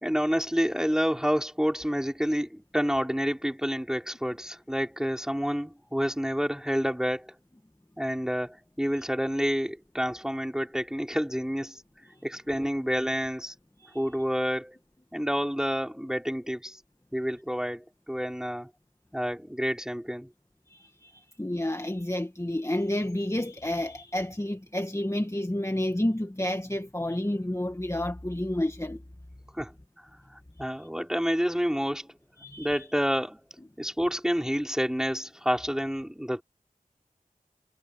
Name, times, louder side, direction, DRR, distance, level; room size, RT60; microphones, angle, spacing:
voice 1, 0.0-7.3 8.0-11.8 12.2-13.5 13.9-14.8 15.1-16.8 17.1-18.7 19.1-20.3 29.5-29.7 30.6-32.1 32.6-33.4 33.8-36.4, equal, 5° right, 4.7 m, -29 dB
voice 2, 20.7-29.0 32.4-32.8, left 1 dB, 20° left, 1.9 m, -30 dB
wide cardioid pair, 45°, 15 cm